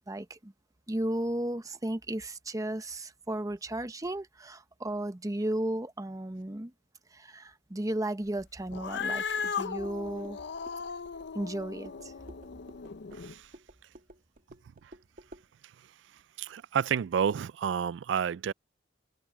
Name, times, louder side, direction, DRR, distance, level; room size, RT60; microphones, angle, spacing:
voice 1, 0.1-0.5 0.9-6.7 7.1-10.4 11.3-12.1, right 1 dB, 20° right, 0.9 m, -34 dB
Cat, 8.7-13.3, left 6 dB, 65° left, 0.6 m, -37 dB
sound 1, 9.0-15.5, right 1 dB, 50° right, 2.2 m, -54 dB
voice 2, 13.1-13.5 16.4-18.5, right 8 dB, 75° right, 0.3 m, -30 dB
head